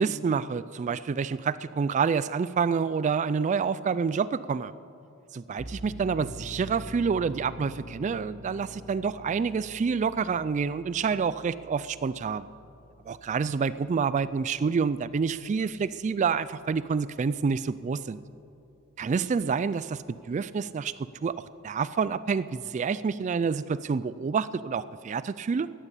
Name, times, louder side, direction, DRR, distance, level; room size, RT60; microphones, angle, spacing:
voice 1, 0.0-4.7 5.3-12.5 13.1-18.2 19.0-20.9 21.2-21.4 21.6-25.7, right 5 dB, 35° right, 16 dB, 0.3 m, -28 dB
sound 1, 5.6-16.9, equal, 10° right, 1.3 m, -47 dB
15.0 x 11.0 x 8.3 m, 2.7 s
head